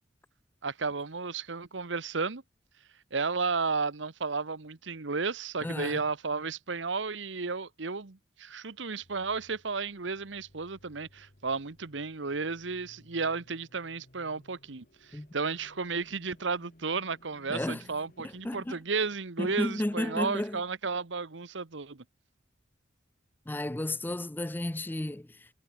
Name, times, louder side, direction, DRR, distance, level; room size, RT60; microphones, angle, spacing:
voice 1, 0.6-2.4 3.1-22.0, right 4 dB, 75° right, 1.1 m, -33 dB
voice 2, 5.6-6.0 15.1-15.3 17.5-17.8 18.2-18.8 19.4-20.6 23.5-25.5, left 1 dB, 10° left, 0.5 m, -33 dB
sound 1, 9.0-18.8, left 1 dB, 50° left, 3.2 m, -60 dB
head